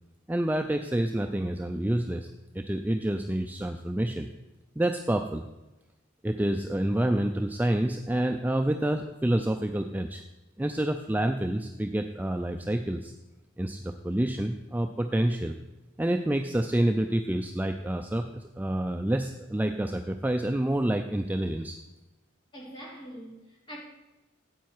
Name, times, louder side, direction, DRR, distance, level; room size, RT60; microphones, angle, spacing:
voice 1, 0.3-2.3 2.5-4.3 4.8-5.4 6.2-10.2 10.6-13.1 13.6-15.6 16.0-21.8, right 1 dB, 10° right, 5 dB, 0.3 m, -28 dB
voice 2, 22.5-23.8, equal, 25° left, -4 dB, 2.8 m, -43 dB
9.3 x 8.2 x 4.5 m, 1.1 s
head